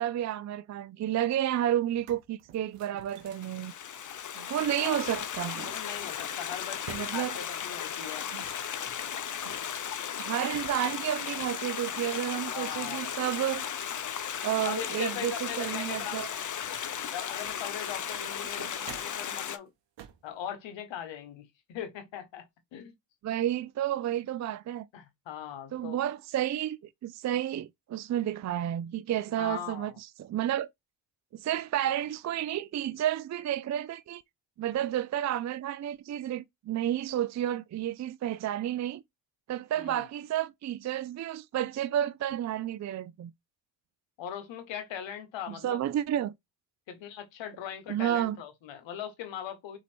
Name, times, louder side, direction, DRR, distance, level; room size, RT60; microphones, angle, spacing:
voice 1, 0.0-3.7 4.5-5.7 6.9-7.4 10.2-13.6 14.4-16.3 23.2-24.9 25.7-30.7 31.3-34.2 34.6-39.0 39.5-43.3 45.5-46.3 47.9-48.4, right 11 dB, 40° right, 0.4 m, -31 dB
sound 1, 1.5-1.6 1.8-4.6 5.5-7.5 8.3-9.9 10.5-12.9 13.3-14.4 14.7-14.8 15.2-17.8 18.2-19.3 20.0-20.3, right 9 dB, 75° right, 0.8 m, -51 dB
Stream, 3.3-19.6, left 8 dB, 45° left, 0.6 m, -36 dB
voice 2, 4.8-5.2 5.6-8.3 12.5-13.0 14.6-16.5 17.1-19.7 20.2-22.5 22.7-22.9 24.9-26.0 29.4-30.0 39.8-40.1 44.2-45.8 46.9-49.8, left 9 dB, 90° left, 1.0 m, -40 dB
4.1 x 2.8 x 4.3 m
supercardioid pair, 45°, 44 cm